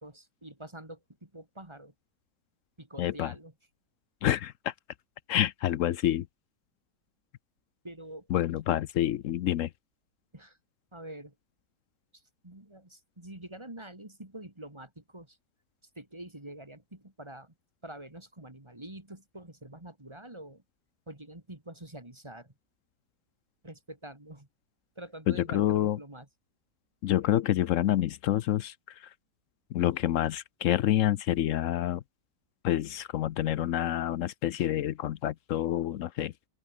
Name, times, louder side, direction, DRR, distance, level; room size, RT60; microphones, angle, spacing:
voice 1, 0.0-1.9 2.8-3.5 7.8-8.3 10.3-10.6 10.9-11.3 12.1-15.4 16.0-17.5 17.8-20.6 21.1-22.5 23.6-24.5 25.0-26.3, right 1 dB, 15° right, 2.8 m, -46 dB
voice 2, 3.0-3.3 4.2-4.7 5.3-6.3 8.3-9.7 25.3-26.0 27.0-28.7 29.0-29.1 29.7-32.0 32.6-36.3, left 12 dB, 65° left, 0.8 m, -27 dB
open air
omnidirectional pair, 1.8 m